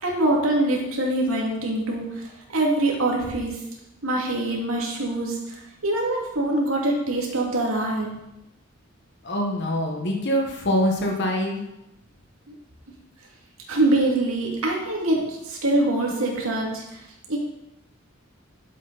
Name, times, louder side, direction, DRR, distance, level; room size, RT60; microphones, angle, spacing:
voice 1, 0.0-2.0 2.5-3.5 4.0-5.5 5.8-8.1 13.7-16.8 17.3-17.4, right 2 dB, 85° right, -2 dB, 2.5 m, -24 dB
voice 2, 9.2-11.6, equal, 55° left, 1 dB, 1.4 m, -24 dB
11.5 x 7.7 x 4.1 m, 0.90 s
head